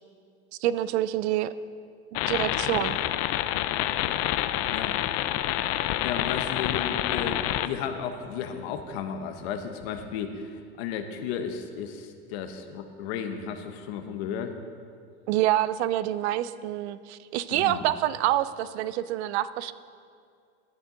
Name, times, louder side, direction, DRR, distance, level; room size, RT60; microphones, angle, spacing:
voice 1, 0.6-1.5 2.3-3.0 15.3-19.7, right 13 dB, 80° right, 16 dB, 0.5 m, -27 dB
sound 1, 2.1-7.7, left 13 dB, 50° left, 0.4 m, -27 dB
voice 2, 4.7-5.0 5.6-5.8 6.0-14.5 17.5-17.8, left 7 dB, 70° left, 7 dB, 0.9 m, -34 dB
12.0 x 8.0 x 3.8 m, 2.3 s
supercardioid pair, 115°, 33 cm